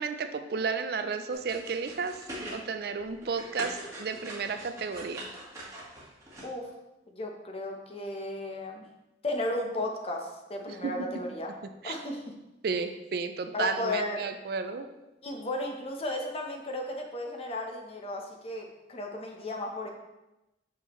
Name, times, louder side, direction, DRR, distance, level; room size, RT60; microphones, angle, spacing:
voice 1, 0.0-2.1 2.5-5.3 11.8-11.9 12.6-14.9, right 5 dB, 60° right, 8 dB, 0.4 m, -32 dB
sound 1, 1.3-2.6 3.0-6.4, right 1 dB, 15° right, 1.4 m, -42 dB
voice 2, 7.2-8.8 9.2-11.5 11.8-12.2 13.5-14.3 15.2-19.9, left 1 dB, 35° left, 1 dB, 0.8 m, -34 dB
6.1 x 5.5 x 3.1 m, 0.97 s
head